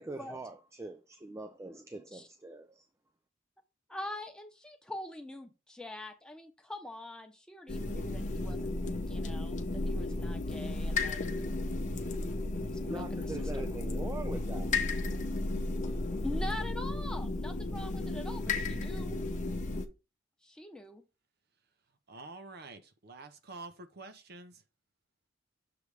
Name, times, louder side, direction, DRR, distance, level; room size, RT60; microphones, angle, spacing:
voice 1, 0.0-2.9 12.5-14.7 15.1-15.2, right 2 dB, 15° right, 0.4 m, -43 dB
voice 2, 3.9-11.2 12.6-13.3 13.5-13.7 16.2-19.2 20.4-21.0, left 1 dB, 5° left, 0.9 m, -44 dB
sound 1, 7.7-19.9, left 2 dB, 40° left, 0.8 m, -34 dB
voice 3, 22.1-24.6, right 3 dB, 55° right, 0.8 m, -48 dB
6.8 x 3.2 x 4.8 m
head